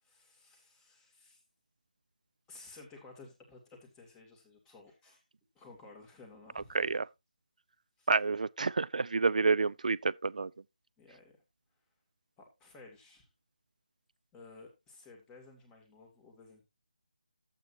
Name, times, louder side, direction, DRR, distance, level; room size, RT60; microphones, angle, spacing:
voice 1, 0.0-1.4 2.5-5.2 5.5-7.0 8.0-8.1 11.0-11.4 12.4-13.3 14.3-16.6, left 3 dB, 10° left, 2.3 m, -55 dB
voice 2, 8.1-10.5, right 4 dB, 65° right, 0.4 m, -29 dB
12.0 x 8.3 x 2.7 m
figure-of-eight pair, 160°, 4 cm